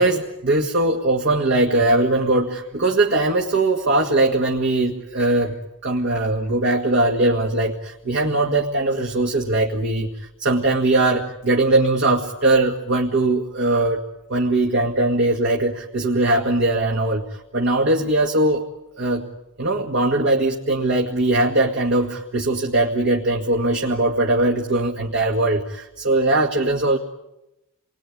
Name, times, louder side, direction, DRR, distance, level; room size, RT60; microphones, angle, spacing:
voice 1, 0.0-17.2 17.5-18.7 19.0-19.3 19.6-27.0, right 2 dB, 55° right, 1 dB, 2.0 m, -20 dB
28.5 x 21.5 x 9.7 m, 0.90 s
head